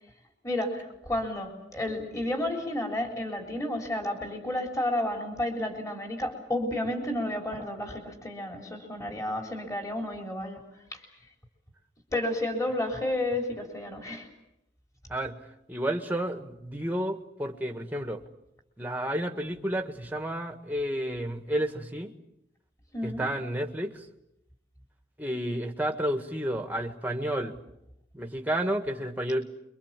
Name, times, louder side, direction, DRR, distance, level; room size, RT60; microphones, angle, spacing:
voice 1, 0.4-10.6 10.9-11.1 12.1-14.3 22.9-23.3, left 1 dB, 15° left, 2 dB, 3.8 m, -31 dB
voice 2, 15.7-18.2 18.8-22.1 23.0-24.0 25.2-27.6 28.1-29.4, right 1 dB, 10° right, 5 dB, 1.7 m, -31 dB
25.5 x 24.0 x 7.5 m, 0.83 s
head